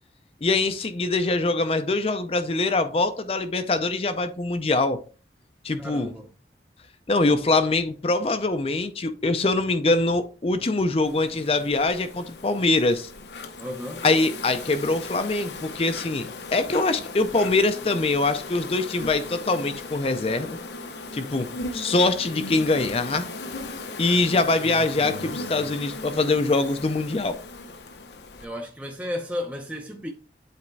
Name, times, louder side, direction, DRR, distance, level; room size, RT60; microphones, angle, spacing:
voice 1, 0.4-5.0 5.6-6.1 7.1-13.1 14.0-20.6 21.1-23.3 24.0-27.4, left 2 dB, 35° left, 0.5 m, -23 dB
voice 2, 5.8-6.3 13.6-14.0 28.4-30.1, left 1 dB, 10° right, 0.6 m, -33 dB
Insect, 11.0-28.5, left 3 dB, 80° left, 0.8 m, -37 dB
8.3 x 4.2 x 3.2 m
head